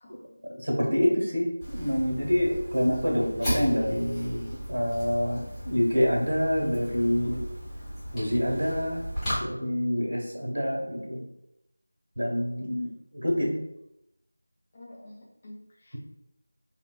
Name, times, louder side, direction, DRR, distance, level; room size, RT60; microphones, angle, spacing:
voice 1, 0.0-0.8 14.7-15.6 15.8-16.0, left 1 dB, 30° left, -4 dB, 0.6 m, -49 dB
voice 2, 0.5-4.4 4.7-7.4 8.1-9.0 9.4-11.2 12.2-13.6, equal, 65° right, -2 dB, 1.2 m, -26 dB
Fire, 1.6-9.4, equal, 5° left, 1.0 m, -35 dB
3.9 x 2.1 x 2.3 m, 0.84 s
figure-of-eight pair, 170°, 0 cm